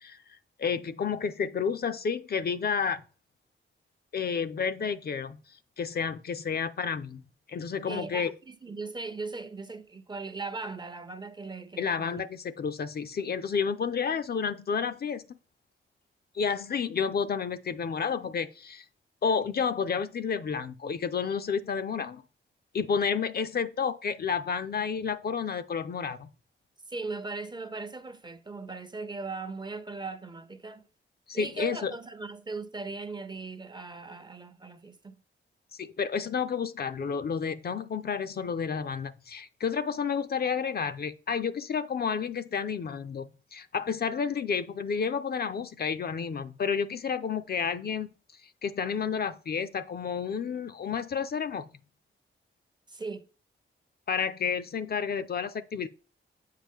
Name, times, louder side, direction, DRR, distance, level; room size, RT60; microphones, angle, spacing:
voice 1, 0.6-3.0 4.1-5.4 5.8-7.2 7.5-8.3 11.8-15.3 16.3-18.8 19.2-22.2 22.7-26.3 31.3-31.9 35.7-48.1 48.6-51.7 54.1-55.9, left 6 dB, 50° left, 0.5 m, -30 dB
voice 2, 7.9-12.2 26.9-30.8 31.3-35.1 52.9-53.2, right 3 dB, 20° right, 0.5 m, -38 dB
7.5 x 5.0 x 3.6 m
wide cardioid pair, 125°, 21 cm